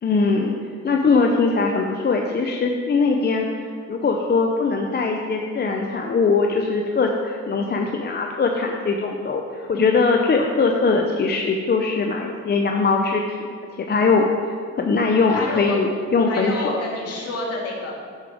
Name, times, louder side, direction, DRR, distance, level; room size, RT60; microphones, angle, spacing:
voice 1, 0.0-0.5 0.8-3.5 3.9-13.2 13.8-16.7, left 4 dB, 35° left, 2 dB, 0.7 m, -21 dB
voice 2, 15.3-15.8 16.3-17.9, left 2 dB, 55° left, -3 dB, 2.3 m, -28 dB
7.5 x 6.8 x 4.8 m, 2.1 s
cardioid pair, 90°, 30 cm